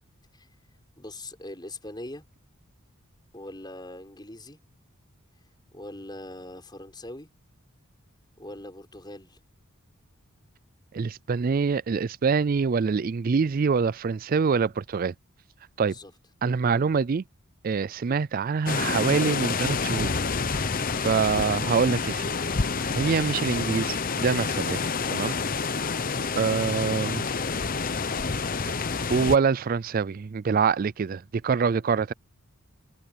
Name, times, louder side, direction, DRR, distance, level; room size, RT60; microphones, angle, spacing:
voice 1, 1.0-2.2 3.3-4.6 5.7-7.3 8.4-9.4 15.8-16.1, left 1 dB, 20° left, 5.3 m, -42 dB
voice 2, 10.9-15.1 15.8-15.9 16.4-17.2 17.6-20.2 20.5-20.6 20.9-22.3 22.9-25.4 26.3-27.2 29.1-32.1, right 5 dB, 40° right, 0.4 m, -25 dB
sound 1, 18.7-29.4, left 4 dB, 40° left, 0.8 m, -28 dB
head